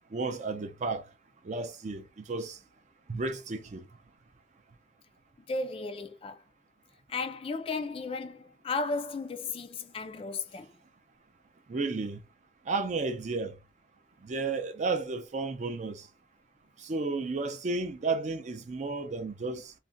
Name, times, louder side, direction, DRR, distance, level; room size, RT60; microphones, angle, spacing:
voice 1, 0.1-1.0 1.4-2.6 3.1-3.8 11.7-12.2 12.7-13.6 14.2-16.1 16.8-19.7, right 3 dB, 40° right, 0.4 m, -32 dB
voice 2, 5.5-6.4 7.1-10.7, left 3 dB, 30° left, 0.3 m, -34 dB
2.4 x 2.1 x 3.7 m
head